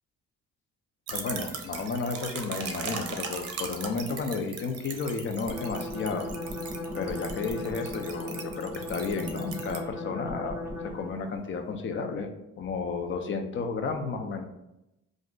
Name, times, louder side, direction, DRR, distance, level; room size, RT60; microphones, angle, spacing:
voice 1, 1.1-6.3 6.9-12.3 12.6-14.5, left 4 dB, 40° left, 6 dB, 0.5 m, -32 dB
sound 1, 1.1-9.8, right 5 dB, 55° right, 0.6 m, -39 dB
sound 2, 5.5-11.2, left 2 dB, 10° right, 0.5 m, -37 dB
2.5 x 2.0 x 3.7 m, 0.88 s
cardioid pair, 90°, 30 cm